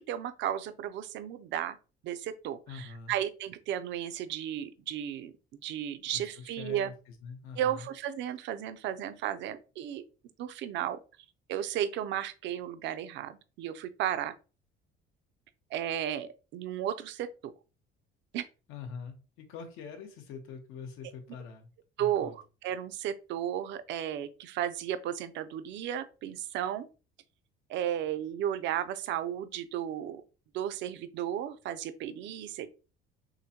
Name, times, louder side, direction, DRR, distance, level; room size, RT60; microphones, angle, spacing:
voice 1, 0.0-1.8 2.0-5.3 5.6-6.9 7.6-10.0 10.4-11.0 11.5-14.3 15.7-17.5 18.3-18.4 22.0-26.9 27.7-30.2 30.5-32.7, right 10 dB, 65° right, 0.5 m, -34 dB
voice 2, 2.7-3.1 6.1-7.9 18.7-21.7 22.0-22.3, left 5 dB, 85° left, 1.2 m, -44 dB
6.4 x 2.1 x 2.9 m
cardioid pair, 145°, 21 cm